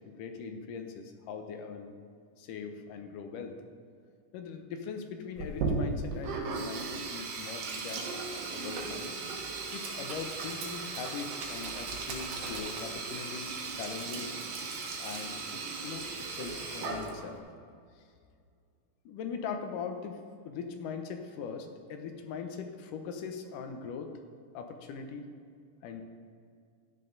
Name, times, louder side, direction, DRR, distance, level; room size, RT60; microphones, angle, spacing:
voice 1, 0.1-1.9 2.4-3.6 4.3-8.2 8.5-9.1 9.7-14.4 15.0-17.4 19.1-20.2 20.5-24.1 24.5-25.3 25.8-26.0, left 6 dB, 80° left, 5 dB, 2.5 m, -41 dB
Sink (filling or washing), 5.4-17.4, right 4 dB, 80° right, 3.0 m, -37 dB
13.5 x 9.9 x 3.9 m, 2.2 s
omnidirectional pair, 3.7 m